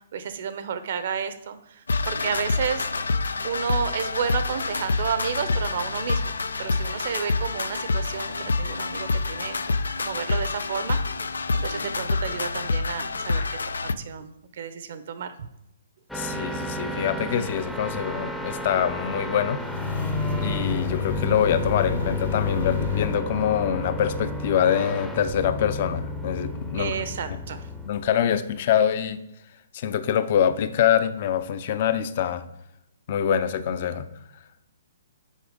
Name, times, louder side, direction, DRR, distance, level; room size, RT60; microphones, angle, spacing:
voice 1, 0.1-2.9 3.4-11.0 11.5-13.6 14.0-15.3 26.7-27.7, right 7 dB, 60° right, 11 dB, 0.7 m, -31 dB
sound 1, 1.9-13.9, left 3 dB, 90° left, 0.4 m, -27 dB
voice 2, 16.1-19.6 20.4-26.9 27.8-29.2 29.7-32.4 33.1-34.1, left 9 dB, 45° left, 12 dB, 0.6 m, -24 dB
sound 2, 16.1-27.9, equal, 5° left, 0.6 m, -33 dB
sound 3, 19.6-23.2, left 5 dB, 70° left, 1.4 m, -28 dB
6.4 x 5.0 x 5.1 m, 0.84 s
hypercardioid pair, 145°, 0 cm